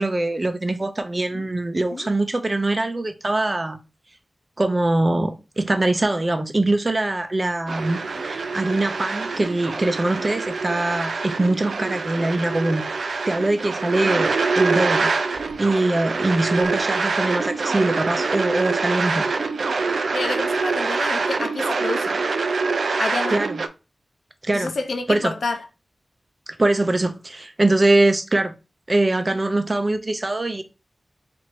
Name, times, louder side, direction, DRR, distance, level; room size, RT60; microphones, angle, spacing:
voice 1, 0.0-3.8 4.6-15.1 15.6-19.3 23.3-23.6 24.4-24.7 25.1-25.3 26.5-28.5 28.9-30.6, right 2 dB, 35° right, 0.5 m, -22 dB
sound 1, 7.7-23.7, right 4 dB, 85° right, 0.3 m, -25 dB
voice 2, 20.1-22.2 23.0-23.4 24.5-25.6, left 3 dB, 80° left, 0.6 m, -28 dB
3.0 x 2.6 x 4.4 m
wide cardioid pair, 80°, 0 cm